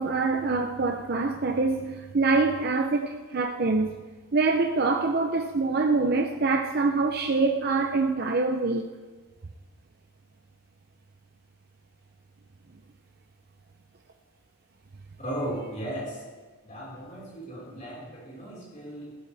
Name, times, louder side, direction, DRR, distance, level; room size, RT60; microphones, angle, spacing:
voice 1, 0.0-4.0 4.3-8.9, right 3 dB, 45° right, 0.6 m, -25 dB
voice 2, 15.2-16.2 16.6-19.2, right 1 dB, 35° left, 4.7 m, -36 dB
15.5 x 13.0 x 3.4 m
head